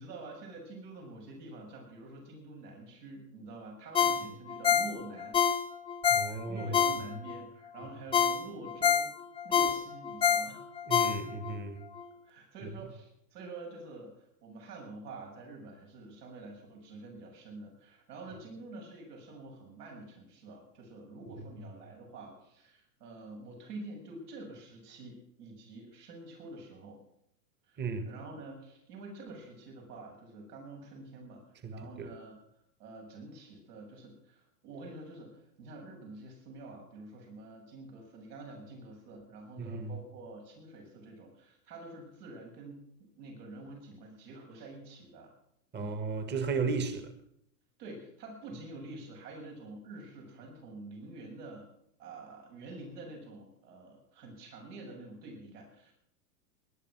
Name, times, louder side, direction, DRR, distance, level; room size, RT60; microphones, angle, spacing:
voice 1, 0.0-5.4 6.2-9.1 9.4-10.7 12.2-27.0 27.7-31.4 31.7-32.4 32.8-42.8 43.2-45.3 45.8-46.0 47.8-51.7 52.0-55.9, right 2 dB, 70° right, 7.3 m, -47 dB
Ringtone, 3.9-7.4 7.8-11.6 12.0-12.1, left 7 dB, 10° left, 0.6 m, -27 dB
voice 2, 6.1-7.0 10.8-11.8 12.6-12.7 21.4-21.6 27.8-28.1 31.6-32.2 39.6-40.0 45.7-47.1, right 4 dB, 20° right, 1.8 m, -35 dB
20.0 x 11.5 x 6.2 m
hypercardioid pair, 130°, 48 cm